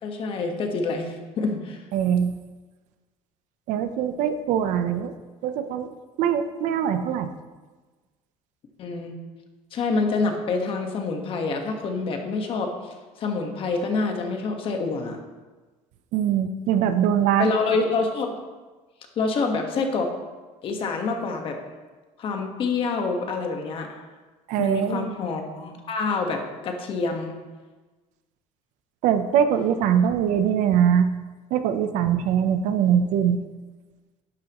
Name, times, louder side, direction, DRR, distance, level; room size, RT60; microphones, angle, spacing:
voice 1, 0.0-1.8 8.8-9.1 9.7-15.2 17.4-18.4 19.2-20.1 20.6-21.6 22.2-24.0 24.6-27.3, left 4 dB, 40° left, 3 dB, 1.5 m, -27 dB
voice 2, 1.9-2.3 3.7-5.1 5.4-5.9 6.2-7.3 16.1-17.5 24.5-25.1 29.0-31.1 31.5-33.4, right 9 dB, 65° right, 9 dB, 0.8 m, -22 dB
11.5 x 9.6 x 3.1 m, 1.3 s
cardioid pair, 145°, 13 cm